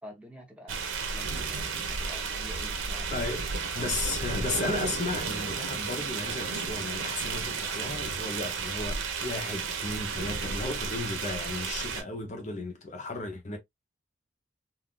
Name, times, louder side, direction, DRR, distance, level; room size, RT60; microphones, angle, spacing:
voice 1, 0.0-3.2, equal, 5° right, 0.8 m, -48 dB
sound 1, 0.7-12.0, right 5 dB, 85° right, 0.8 m, -33 dB
voice 2, 3.1-13.6, left 2 dB, 35° left, 0.6 m, -35 dB
3.7 x 2.3 x 2.3 m
head